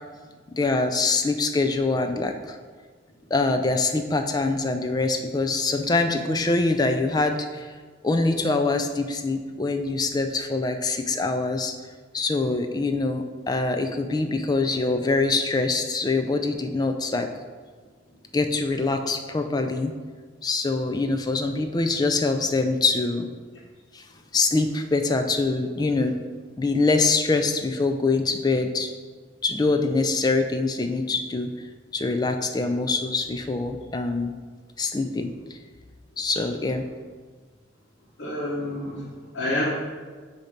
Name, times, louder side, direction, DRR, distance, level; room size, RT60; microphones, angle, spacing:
voice 1, 0.6-2.6 3.3-7.7 8.0-11.7 12.1-17.3 18.3-19.9 20.4-23.3 23.9-24.0 24.3-26.1 26.6-28.9 29.4-31.5 31.9-34.3 34.8-35.3 36.2-36.8, left 3 dB, 20° left, 6 dB, 0.4 m, -24 dB
voice 2, 38.2-39.7, left 1 dB, 80° left, -8 dB, 1.1 m, -28 dB
7.6 x 2.8 x 5.1 m, 1.5 s
head